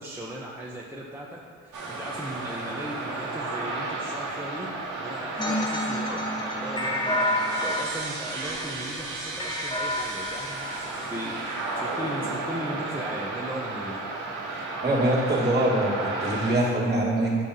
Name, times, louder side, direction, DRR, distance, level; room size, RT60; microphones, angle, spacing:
voice 1, 0.0-14.0, right 1 dB, 5° right, -4 dB, 0.7 m, -37 dB
sound 1, 1.7-16.6, right 2 dB, 70° right, 1.4 m, -33 dB
sound 2, 5.4-11.5, left 1 dB, 15° left, 1.1 m, -30 dB
voice 2, 14.8-17.4, right 1 dB, 35° right, -4 dB, 1.7 m, -24 dB
7.3 x 3.6 x 5.4 m, 2.1 s
cardioid pair, 90°, 30 cm